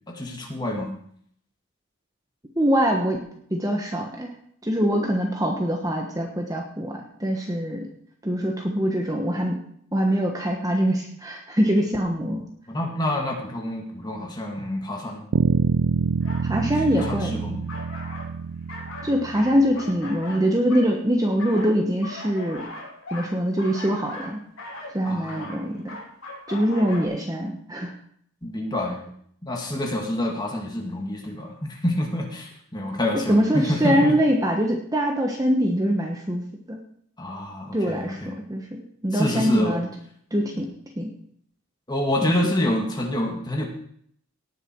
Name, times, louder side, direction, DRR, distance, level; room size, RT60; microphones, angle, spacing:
voice 1, 0.1-0.9 12.7-15.3 16.6-17.6 25.0-25.6 28.4-29.1 29.4-34.1 37.2-38.4 39.1-39.8 40.5-40.7 41.9-43.6, left 1 dB, 20° left, 1 dB, 2.1 m, -27 dB
voice 2, 2.6-3.2 3.5-4.3 4.6-7.9 8.2-9.6 9.9-12.4 16.4-17.4 19.0-22.7 23.1-24.4 24.9-26.0 26.5-27.9 33.3-36.8 37.7-39.9 40.3-41.1 42.2-42.5, equal, 15° right, 1 dB, 1.2 m, -23 dB
Bass guitar, 15.3-19.8, right 5 dB, 65° right, 0.4 m, -26 dB
sound 1, 16.2-16.5 17.0-17.2 17.7-18.4 18.7-20.9 21.4-27.1, left 2 dB, 70° left, 3.2 m, -39 dB
18.0 x 6.8 x 4.6 m, 0.64 s
head